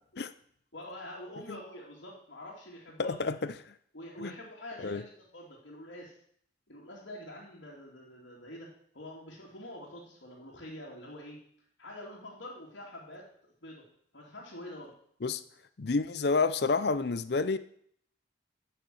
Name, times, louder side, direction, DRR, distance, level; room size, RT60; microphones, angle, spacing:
voice 1, 0.7-3.3 3.9-6.2 6.7-11.4 11.8-13.3 13.6-13.8 14.1-14.9, left 1 dB, 75° left, 2.6 m, -46 dB
voice 2, 3.0-3.5 4.2-4.3 4.8-5.0 15.2-15.4 15.8-17.6, left 4 dB, 60° left, 0.5 m, -29 dB
10.0 x 6.7 x 7.8 m
head